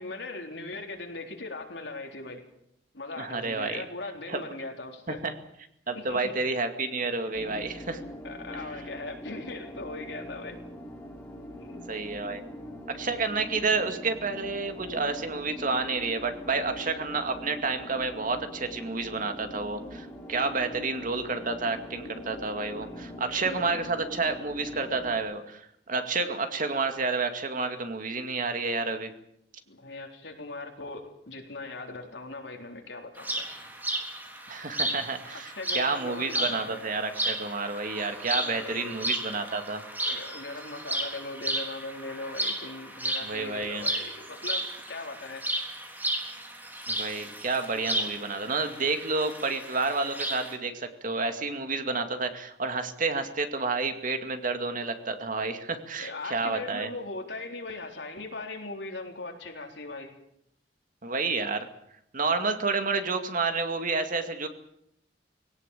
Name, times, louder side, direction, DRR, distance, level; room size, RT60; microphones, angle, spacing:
voice 1, 0.0-2.4 2.9-5.2 5.9-6.3 8.2-10.6 11.5-11.8 22.9-23.7 29.7-33.5 35.3-36.8 38.3-39.0 39.9-45.4 56.0-60.1, left 2 dB, 75° left, 3 dB, 3.9 m, -39 dB
voice 2, 3.2-3.8 4.3-4.4 5.1-5.3 5.9-8.0 11.9-12.4 12.9-29.1 34.5-39.8 43.2-43.9 46.9-56.9 61.0-61.7 62.1-64.5, right 3 dB, 50° right, 7 dB, 2.3 m, -30 dB
sound 1, 7.3-25.2, left 1 dB, 10° left, 3.4 m, -43 dB
sound 2, 33.2-50.5, right 1 dB, 10° right, 3.7 m, -34 dB
20.5 x 18.0 x 8.5 m, 0.76 s
head